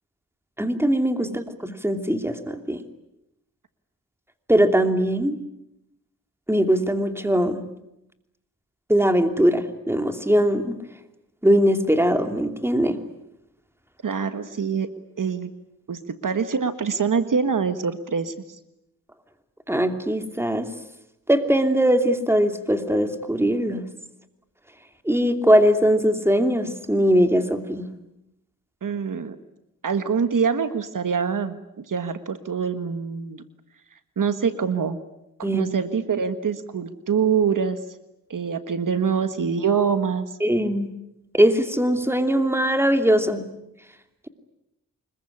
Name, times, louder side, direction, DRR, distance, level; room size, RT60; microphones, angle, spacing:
voice 1, 0.6-2.8 4.5-5.4 6.5-7.6 8.9-10.8 11.4-13.0 19.7-20.7 21.3-23.9 25.0-27.9 35.4-35.7 40.4-40.9 41.3-43.5, equal, 5° right, 7 dB, 2.8 m, -21 dB
voice 2, 14.0-14.9 15.2-15.5 15.9-18.3 28.8-29.4 29.8-33.4 34.2-35.0 35.4-37.8 38.3-40.4, right 6 dB, 65° right, 11 dB, 1.5 m, -25 dB
25.5 x 22.0 x 9.9 m, 0.87 s
cardioid pair, 65°, 34 cm